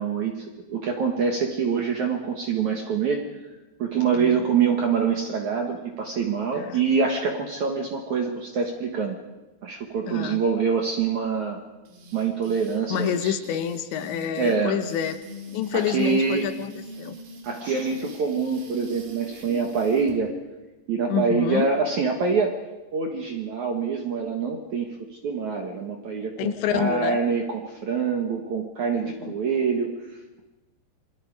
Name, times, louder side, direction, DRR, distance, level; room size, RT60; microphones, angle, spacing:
voice 1, 0.0-3.3 3.8-9.2 9.6-11.6 12.1-13.4 14.4-14.8 15.7-16.5 17.4-20.3 20.9-22.6 22.9-29.9, right 5 dB, 60° right, 2 dB, 2.1 m, -25 dB
voice 2, 10.1-10.4 12.9-15.2 15.5-16.7 17.0-17.2 21.1-21.7 26.4-27.2 29.0-29.3, left 9 dB, 80° left, 9 dB, 3.2 m, -28 dB
sound 1, 11.9-20.2, left 1 dB, 90° right, 5.6 m, -42 dB
27.0 x 23.0 x 4.8 m, 1.1 s
omnidirectional pair, 5.3 m